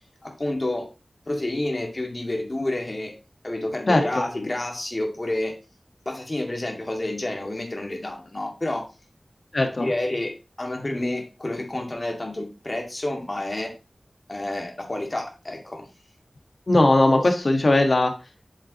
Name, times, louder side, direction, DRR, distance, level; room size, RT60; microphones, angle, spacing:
voice 1, 0.2-0.9 1.3-3.1 3.4-5.6 6.1-8.9 9.8-13.7 14.3-15.9, left 1 dB, 40° left, 2 dB, 2.1 m, -29 dB
voice 2, 3.9-4.2 9.5-9.9 16.7-18.1, left 2 dB, 60° left, 5 dB, 1.5 m, -19 dB
7.9 x 7.3 x 3.0 m, 0.28 s
wide cardioid pair, 70°, 0 cm